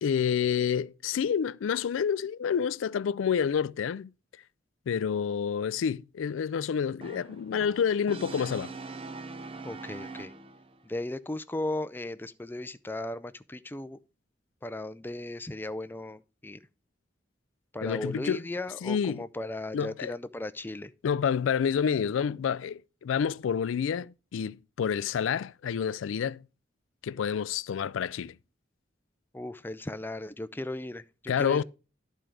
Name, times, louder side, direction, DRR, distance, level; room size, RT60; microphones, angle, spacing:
voice 1, 0.0-4.1 4.9-8.7 17.8-18.4 18.8-19.2 19.7-20.1 21.0-26.4 27.0-28.4 31.3-31.6, left 7 dB, 85° left, 0.3 m, -28 dB
Brass instrument, 7.0-10.8, right 3 dB, 30° right, 0.7 m, -42 dB
voice 2, 9.6-10.3 10.9-14.0 14.6-16.6 17.7-20.9 29.3-31.6, left 1 dB, 10° left, 0.4 m, -36 dB
11.0 x 4.6 x 4.9 m
head